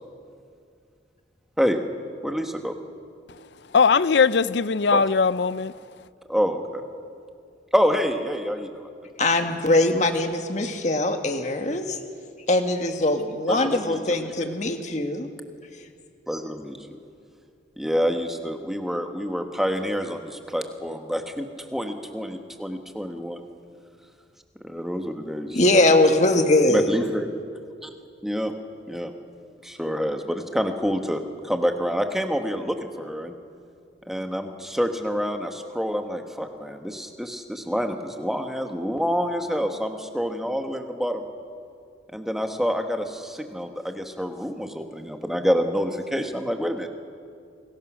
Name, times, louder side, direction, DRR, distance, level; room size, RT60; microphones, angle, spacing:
voice 1, 2.2-2.7 4.9-5.0 6.3-6.8 7.7-8.9 13.5-14.5 16.3-16.8 17.8-23.4 24.6-25.6 26.7-27.3 27.8-27.9 28.2-28.5 28.9-29.1 29.6-33.3 34.1-41.2 42.1-46.9, equal, ahead, 1.3 m, -27 dB
voice 2, 3.7-5.8, left 5 dB, 70° left, 0.5 m, -20 dB
voice 3, 9.2-12.0 12.5-15.3 25.5-26.9, left 2 dB, 40° left, 1.7 m, -21 dB
28.5 x 21.5 x 6.2 m
head